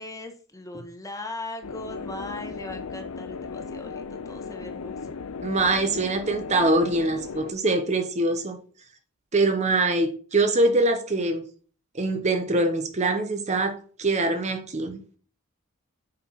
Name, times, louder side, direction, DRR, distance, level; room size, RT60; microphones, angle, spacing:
voice 1, 0.0-5.1, left 2 dB, 15° left, 1.2 m, -39 dB
sound 1, 1.6-7.5, left 5 dB, 80° left, 0.6 m, -36 dB
voice 2, 5.4-8.6 9.3-11.4 11.9-15.0, right 2 dB, 30° right, 0.9 m, -23 dB
7.6 x 4.6 x 5.6 m
head